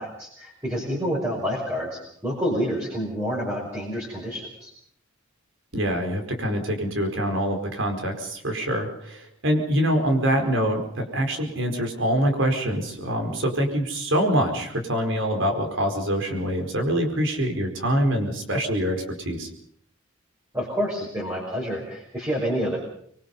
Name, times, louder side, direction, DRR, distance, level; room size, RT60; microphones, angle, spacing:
voice 1, 0.0-4.7 20.5-22.8, equal, 15° right, -4 dB, 5.6 m, -28 dB
voice 2, 5.7-19.5, equal, 65° right, 4 dB, 4.7 m, -25 dB
26.0 x 23.0 x 5.5 m, 0.65 s
head